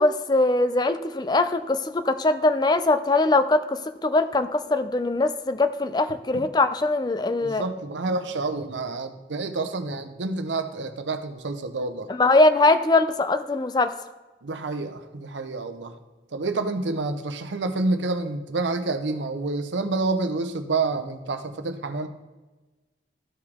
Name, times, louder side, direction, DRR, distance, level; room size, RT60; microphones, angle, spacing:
voice 1, 0.0-7.6 12.1-13.9, left 2 dB, 25° left, 10 dB, 0.4 m, -21 dB
voice 2, 7.4-12.1 14.4-15.9 16.3-22.1, right 3 dB, 85° right, 8 dB, 0.8 m, -28 dB
13.5 x 4.9 x 3.6 m, 1.2 s
head